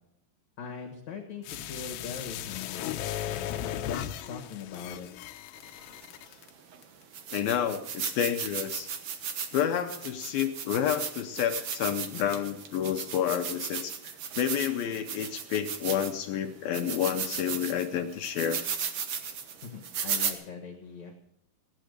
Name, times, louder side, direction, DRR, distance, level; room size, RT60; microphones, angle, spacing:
voice 1, 0.6-5.1 19.6-21.1, left 6 dB, 55° left, 1 dB, 2.3 m, -41 dB
sound 1, 1.4-6.5 6.8-6.9, left 11 dB, 90° left, 2.9 m, -37 dB
sound 2, 6.0-6.1 6.7-6.8 7.1-16.3 16.7-20.3, right 7 dB, 80° right, 1.3 m, -36 dB
voice 2, 7.3-8.9 9.5-18.6, left 9 dB, 75° left, 6 dB, 2.5 m, -30 dB
17.0 x 10.0 x 6.5 m, 0.78 s
omnidirectional pair, 4.7 m